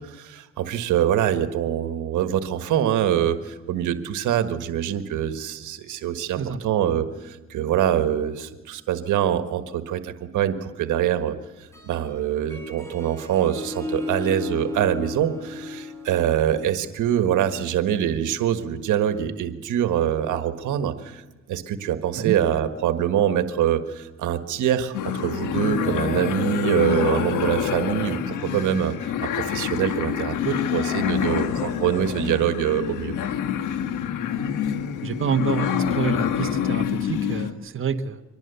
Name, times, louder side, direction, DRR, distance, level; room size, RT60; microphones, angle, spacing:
voice 1, 0.0-11.4 11.8-21.2 21.5-25.0 25.2-33.1, right 10 dB, 85° right, 9 dB, 1.6 m, -24 dB
Harp, 11.6-17.1, left 2 dB, 10° left, 5.8 m, -35 dB
sound 1, 24.9-37.5, left 9 dB, 85° left, 1.6 m, -26 dB
voice 2, 35.0-38.2, right 6 dB, 45° right, 5 dB, 1.4 m, -27 dB
24.5 x 19.5 x 7.0 m, 1.1 s
cardioid pair, 90°, 30 cm